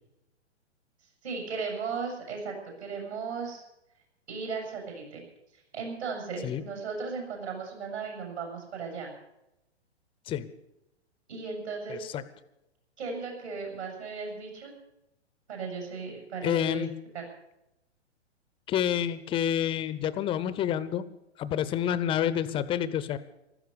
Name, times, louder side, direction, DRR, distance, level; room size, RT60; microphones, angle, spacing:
voice 1, 1.2-2.5 2.8-3.6 4.3-5.2 5.7-9.1 11.3-12.0 13.0-14.7 15.5-16.8 17.1-17.2, right 5 dB, 65° right, 2 dB, 7.0 m, -36 dB
voice 2, 11.9-12.2 16.4-16.9 18.7-21.1 21.4-23.2, left 10 dB, 15° left, 15 dB, 0.7 m, -28 dB
15.0 x 13.5 x 6.8 m, 0.89 s
figure-of-eight pair, 115°, 35 cm